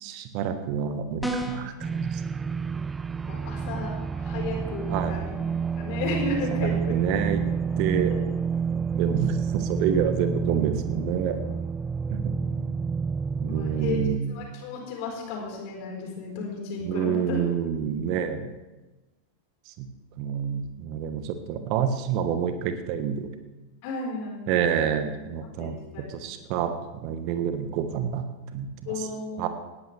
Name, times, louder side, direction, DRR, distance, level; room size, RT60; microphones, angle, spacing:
voice 1, 0.0-2.2 4.9-5.2 6.6-7.4 7.8-8.1 8.9-11.4 12.1-12.3 13.3-14.4 16.8-18.5 19.8-19.9 20.2-23.3 24.5-25.8 26.1-28.2 28.5-28.9 29.4-29.5, right 8 dB, 45° right, 9 dB, 1.3 m, -28 dB
sound 1, 1.2-1.8, right 1 dB, ahead, 1.6 m, -30 dB
sound 2, 1.8-14.2, right 6 dB, 15° right, 0.3 m, -29 dB
voice 2, 3.3-5.3 5.7-7.0 12.3-12.9 13.5-14.0 14.3-17.4 23.8-24.5 25.6-26.2 28.8-29.5, left 3 dB, 45° left, 0 dB, 4.5 m, -34 dB
19.0 x 14.0 x 3.4 m, 1.1 s
figure-of-eight pair, 90°, 0 cm